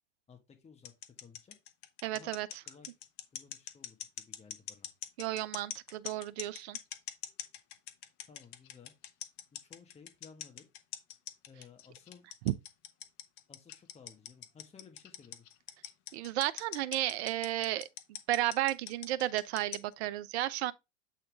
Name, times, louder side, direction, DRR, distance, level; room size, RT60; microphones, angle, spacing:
voice 1, 0.3-0.9 1.2-1.6 2.1-2.4 2.7-2.9 3.3-4.9 8.3-8.9 9.6-10.6 11.5-12.3 13.5-15.4, left 6 dB, 15° left, 1.6 m, -56 dB
sound 1, 0.9-19.9, left 11 dB, 50° left, 1.1 m, -43 dB
voice 2, 2.0-2.5 5.2-6.8 12.5-12.6 16.1-17.9 18.3-20.7, right 14 dB, 60° right, 0.7 m, -33 dB
8.1 x 3.7 x 3.5 m
hypercardioid pair, 100°, 37 cm